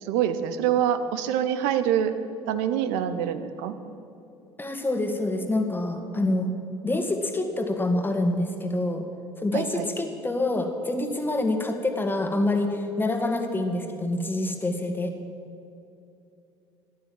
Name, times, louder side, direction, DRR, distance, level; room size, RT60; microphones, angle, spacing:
voice 1, 0.0-2.1 2.5-3.7 9.5-9.9, right 9 dB, 60° right, 10 dB, 1.0 m, -25 dB
voice 2, 4.6-6.5 6.8-9.1 9.4-15.2, left 2 dB, 15° left, 5 dB, 1.9 m, -26 dB
13.0 x 11.5 x 7.6 m, 2.8 s
figure-of-eight pair, 60°, 14 cm